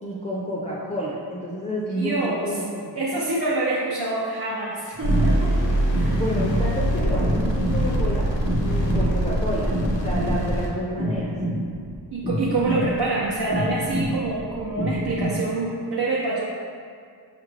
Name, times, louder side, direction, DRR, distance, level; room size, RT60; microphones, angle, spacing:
voice 1, 0.0-3.0 6.1-11.4, equal, 15° left, -6 dB, 0.5 m, -30 dB
voice 2, 1.9-2.6 2.9-5.5 5.9-6.2 12.1-16.5, right 2 dB, 60° right, -6 dB, 0.7 m, -26 dB
sound 1, 4.9-15.3, equal, 20° right, 0.6 m, -28 dB
sound 2, 5.0-10.7, right 1 dB, 85° left, 0.9 m, -23 dB
5.7 x 2.5 x 3.3 m, 2.2 s
wide cardioid pair, 85°, 43 cm